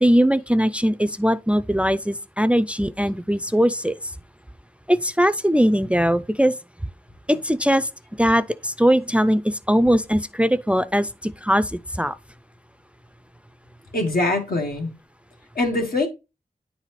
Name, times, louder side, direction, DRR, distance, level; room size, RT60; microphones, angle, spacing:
voice 1, 0.0-3.9 4.9-6.5 7.3-7.9 8.2-12.2, equal, 10° right, 0.3 m, -20 dB
voice 2, 13.9-14.9 15.6-16.1, left 2 dB, 85° left, 1.6 m, -23 dB
9.4 x 4.1 x 3.1 m
wide cardioid pair, 55°, 15 cm